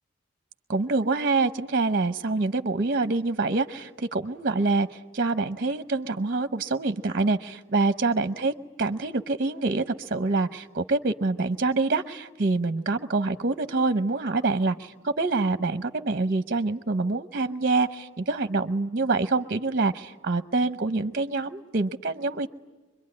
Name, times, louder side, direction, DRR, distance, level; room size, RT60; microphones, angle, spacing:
voice 1, 0.7-22.5, right 3 dB, 50° right, 10 dB, 0.8 m, -26 dB
24.5 x 22.5 x 9.7 m, 1.2 s
head